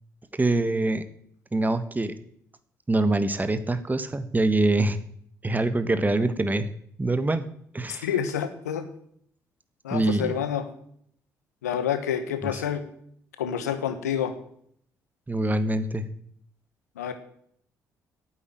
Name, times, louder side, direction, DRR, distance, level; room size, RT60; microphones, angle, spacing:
voice 1, 0.3-1.0 1.5-2.1 2.9-5.0 5.4-6.7 7.0-7.5 7.7-8.1 9.9-10.4 12.5-12.6 15.3-16.0, right 2 dB, 20° right, 11 dB, 1.5 m, -24 dB
voice 2, 8.0-8.9 9.8-10.7 11.6-12.8 13.4-14.3 17.0-17.1, left 8 dB, 85° left, 10 dB, 1.2 m, -28 dB
8.9 x 8.9 x 9.1 m, 0.67 s
hypercardioid pair, 45°, 9 cm